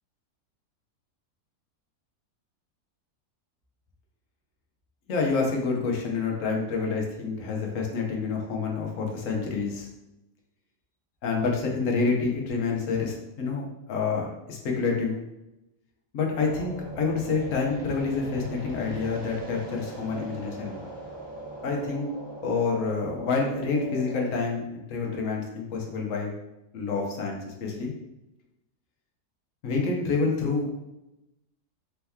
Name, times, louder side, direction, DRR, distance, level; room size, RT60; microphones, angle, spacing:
voice 1, 5.1-9.9 11.2-15.2 16.1-20.8 21.6-22.1 22.4-26.3 26.7-27.9 29.6-30.7, left 4 dB, 60° left, 0 dB, 1.1 m, -28 dB
sound 1, 16.4-24.2, right 1 dB, 40° right, 0.4 m, -40 dB
4.5 x 2.8 x 3.5 m, 0.92 s
omnidirectional pair, 1.7 m